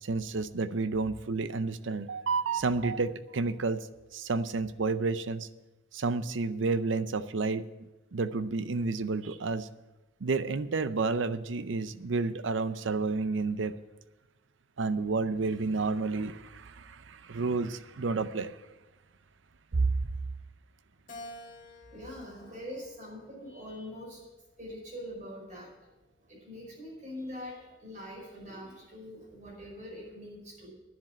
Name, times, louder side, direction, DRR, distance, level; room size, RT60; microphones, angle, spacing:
voice 1, 0.0-5.5 5.9-7.6 8.1-9.7 10.2-13.7 14.8-18.6 19.7-20.0, right 4 dB, 75° right, 14 dB, 0.6 m, -30 dB
Keyboard (musical), 21.1-23.6 24.2-25.4, left 1 dB, 45° left, 1.9 m, -50 dB
voice 2, 21.6-24.3 24.6-25.7 26.3-30.7, left 1 dB, 40° right, -3 dB, 5.3 m, -43 dB
10.0 x 7.5 x 8.6 m, 1.1 s
head